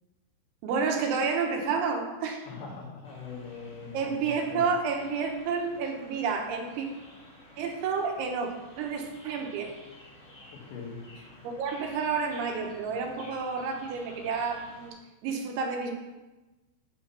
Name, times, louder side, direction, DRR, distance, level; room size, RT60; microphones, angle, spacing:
voice 1, 0.6-2.5 3.9-6.9 7.6-9.7 11.4-15.0 15.2-15.9, right 5 dB, 75° right, 3 dB, 3.2 m, -30 dB
voice 2, 2.5-4.6 10.7-11.0, left 5 dB, 65° left, -2 dB, 3.6 m, -42 dB
sound 1, 3.0-14.9, left 1 dB, 25° left, 1.6 m, -52 dB
8.6 x 6.3 x 5.7 m, 1.1 s
omnidirectional pair, 5.8 m